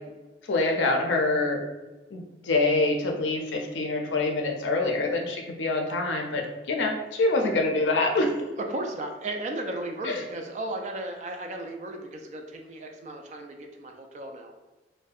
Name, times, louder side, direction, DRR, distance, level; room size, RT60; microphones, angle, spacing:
voice 1, 0.5-1.6 2.1-6.4 6.7-8.3 10.0-10.2, left 2 dB, 90° left, 2 dB, 0.5 m, -25 dB
voice 2, 8.6-14.5, right 2 dB, 40° right, 3 dB, 0.3 m, -35 dB
2.6 x 2.1 x 2.3 m, 1.1 s
head